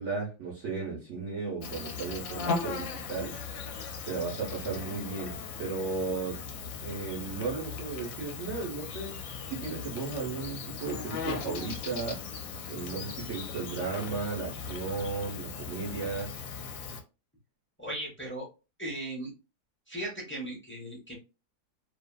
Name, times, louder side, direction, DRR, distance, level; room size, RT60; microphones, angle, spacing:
voice 1, 0.0-3.4 4.0-9.2 9.5-12.2 12.7-16.3, right 4 dB, 55° right, -3 dB, 0.9 m, -35 dB
Insect, 1.6-17.0, left 5 dB, 65° left, 0.9 m, -38 dB
voice 2, 17.8-18.5 18.8-19.3 19.9-21.1, right 1 dB, 15° left, -3 dB, 0.4 m, -37 dB
2.7 x 2.4 x 2.2 m, 0.30 s
omnidirectional pair, 1.8 m